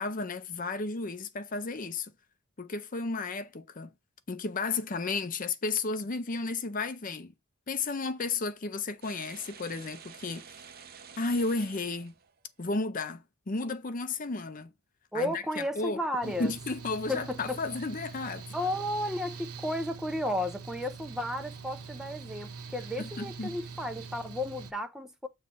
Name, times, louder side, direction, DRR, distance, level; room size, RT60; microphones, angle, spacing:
voice 1, 0.0-2.1 2.6-3.9 4.3-7.3 7.7-10.4 11.2-12.2 12.6-14.7 15.1-15.4 15.8-18.5 23.0-23.5, left 3 dB, 35° left, 0.6 m, -33 dB
sound 1, 9.0-12.6, right 7 dB, 40° right, 0.7 m, -50 dB
voice 2, 15.1-16.5 17.1-17.6 18.5-25.3, left 1 dB, 5° right, 0.6 m, -33 dB
Mechanical fan, 16.2-24.7, right 5 dB, 85° right, 1.1 m, -44 dB
8.0 x 3.2 x 5.5 m
head